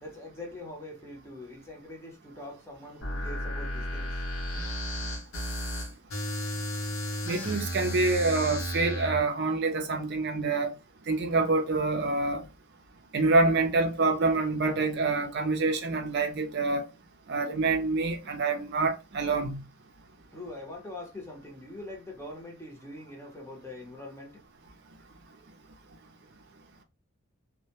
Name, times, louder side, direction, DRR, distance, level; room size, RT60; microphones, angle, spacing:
voice 1, 0.0-4.1 20.3-24.3, left 2 dB, 10° left, 0.7 m, -43 dB
sound 1, 3.0-9.2, equal, 75° left, 0.7 m, -33 dB
voice 2, 7.3-10.7 11.1-12.4 13.1-16.8 17.3-19.6, right 3 dB, 55° right, 0.5 m, -26 dB
2.1 x 2.1 x 2.8 m
head